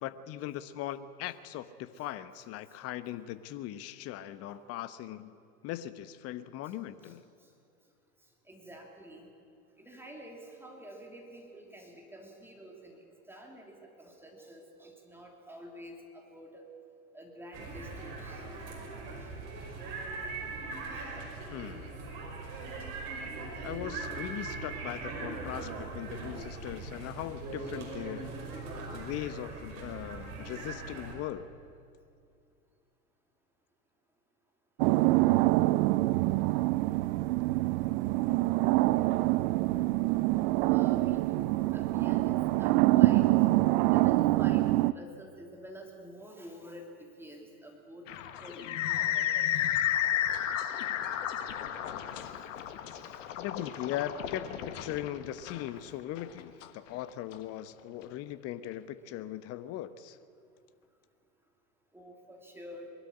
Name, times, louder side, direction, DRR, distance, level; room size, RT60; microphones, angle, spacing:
voice 1, 0.0-5.4 5.6-7.2 21.5-21.9 23.6-28.4 28.9-31.5 53.4-60.2, left 12 dB, 35° left, 14 dB, 1.0 m, -39 dB
voice 2, 8.5-9.3 9.8-16.6 17.1-18.4 19.2-19.3 20.9-21.1 38.9-39.1 40.7-43.3 43.8-46.9 47.2-49.7 53.0-53.2 55.7-55.8 61.9-62.9, equal, 5° right, 0 dB, 3.0 m, -49 dB
sound 1, 17.5-31.1, right 3 dB, 50° right, 5.5 m, -40 dB
sound 2, 34.8-44.9, right 19 dB, 35° right, 0.4 m, -25 dB
sound 3, 48.1-57.4, left 11 dB, 60° left, 1.5 m, -33 dB
21.5 x 13.0 x 9.7 m, 2.4 s
figure-of-eight pair, 95°, 42 cm